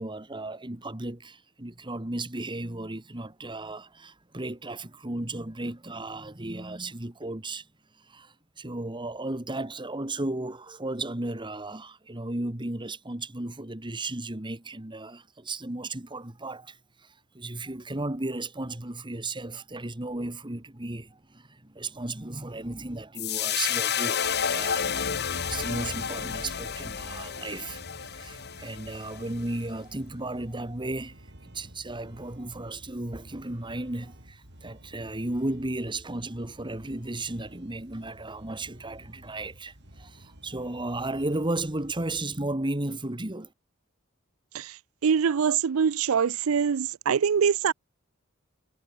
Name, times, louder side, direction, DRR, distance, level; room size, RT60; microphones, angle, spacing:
voice 1, 0.0-7.7 8.0-24.9 25.5-43.5, right 2 dB, 25° right, 1.7 m, -35 dB
sound 1, 23.2-29.6, left 7 dB, 55° left, 1.9 m, -31 dB
sound 2, 24.2-42.3, right 1 dB, 55° right, 7.4 m, -51 dB
voice 2, 45.0-47.7, right 7 dB, 85° right, 0.5 m, -24 dB
head